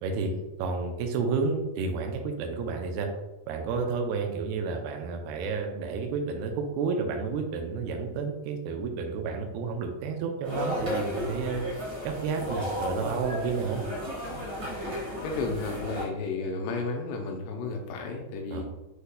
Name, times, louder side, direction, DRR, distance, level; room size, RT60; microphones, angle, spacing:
voice 1, 0.0-0.3 0.6-3.1 3.5-11.6 12.0-13.8 18.5-18.7, right 4 dB, 80° right, 3 dB, 2.3 m, -31 dB
sound 1, 10.4-16.1, equal, 65° right, 1.0 m, -34 dB
voice 2, 15.2-18.7, left 3 dB, 90° left, 2 dB, 2.8 m, -33 dB
7.9 x 2.7 x 2.2 m, 1.0 s
omnidirectional pair, 4.7 m